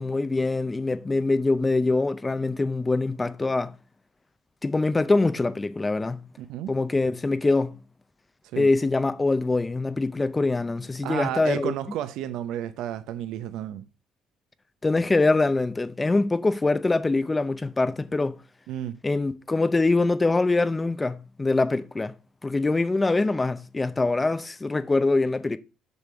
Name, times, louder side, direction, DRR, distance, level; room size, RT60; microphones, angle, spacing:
voice 1, 0.0-3.7 4.6-6.2 6.7-7.8 8.6-11.7 14.8-18.4 19.0-22.1 22.4-25.6, left 3 dB, 15° left, 0.5 m, -24 dB
voice 2, 6.4-6.7 8.5-8.7 11.0-13.9 18.7-19.0, right 11 dB, 70° right, 0.6 m, -32 dB
6.9 x 6.7 x 4.6 m
cardioid pair, 170°, 0 cm